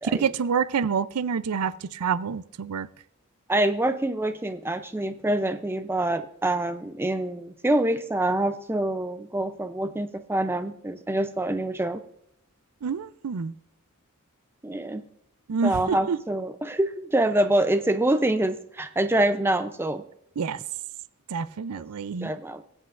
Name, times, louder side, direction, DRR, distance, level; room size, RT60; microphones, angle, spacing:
voice 1, 0.0-2.9 12.8-13.5 15.5-16.2 20.4-20.6 21.3-22.3, right 6 dB, 85° right, 16 dB, 0.5 m, -27 dB
voice 2, 3.5-12.0 14.6-15.0 15.6-20.0 22.2-22.6, right 1 dB, 10° right, 10 dB, 0.4 m, -25 dB
23.5 x 8.0 x 2.5 m, 0.73 s
head